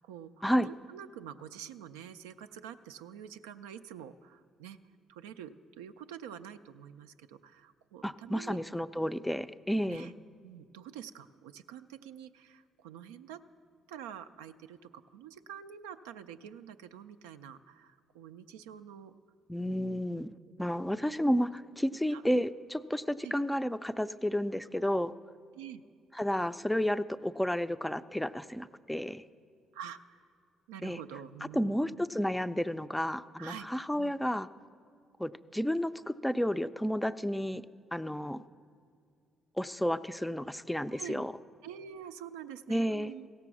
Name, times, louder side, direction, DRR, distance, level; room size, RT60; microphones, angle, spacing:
voice 1, 0.0-4.8 5.1-8.6 9.9-10.1 10.4-13.4 13.9-19.1 19.6-19.8 22.1-22.2 23.2-23.4 25.5-25.8 29.7-30.0 30.7-32.0 33.4-33.7 34.0-34.2 40.9-41.3 41.6-43.3, right 9 dB, 85° right, 10 dB, 0.3 m, -47 dB
voice 2, 8.0-10.1 19.5-25.1 26.2-29.2 30.8-31.0 31.5-34.5 35.2-37.6 37.9-38.4 39.6-41.3 42.7-43.1, equal, 5° left, 12 dB, 0.4 m, -31 dB
16.0 x 6.8 x 6.1 m, 2.3 s
hypercardioid pair, 55°, 0 cm